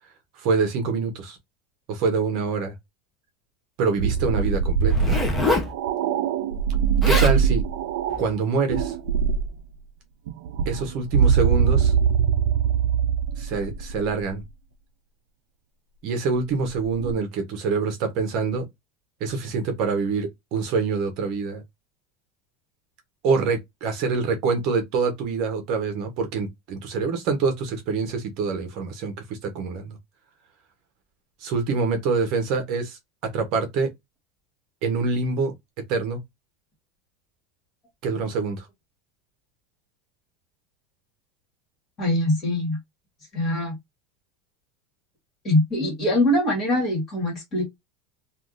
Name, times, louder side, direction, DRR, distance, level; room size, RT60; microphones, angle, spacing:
voice 1, 0.4-1.4 1.9-2.7 3.8-5.1 7.1-7.6 8.2-8.9 10.7-11.9 13.4-14.4 16.0-18.6 19.2-21.6 23.2-30.0 31.4-33.9 34.8-35.5 35.9-36.2 38.0-38.7, right 4 dB, 40° right, 0.8 m, -25 dB
sound 1, 4.0-8.2 8.7-9.6 10.3-14.4 16.7-17.2, right 7 dB, 75° right, 0.4 m, -22 dB
Zipper (clothing), 4.9-5.7 6.7-6.8 7.0-7.4 8.1-8.3, left 2 dB, 5° left, 0.6 m, -24 dB
voice 2, 42.0-42.8 43.3-43.8 45.4-47.6, left 1 dB, 25° left, 1.7 m, -23 dB
3.4 x 2.4 x 2.4 m
supercardioid pair, 170°, 0 cm